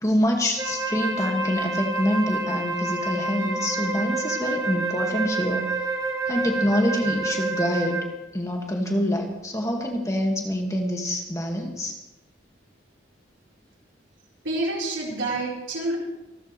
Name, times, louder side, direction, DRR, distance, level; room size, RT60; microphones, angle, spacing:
voice 1, 0.0-5.7 6.3-8.0 8.3-11.9, equal, 15° left, 1 dB, 1.9 m, -25 dB
Wind instrument woodwind instrument, 0.6-8.2, right 3 dB, 20° right, 1.4 m, -28 dB
voice 2, 14.4-16.0, right 2 dB, 90° right, -3 dB, 4.2 m, -28 dB
26.0 x 12.5 x 3.2 m, 1.0 s
head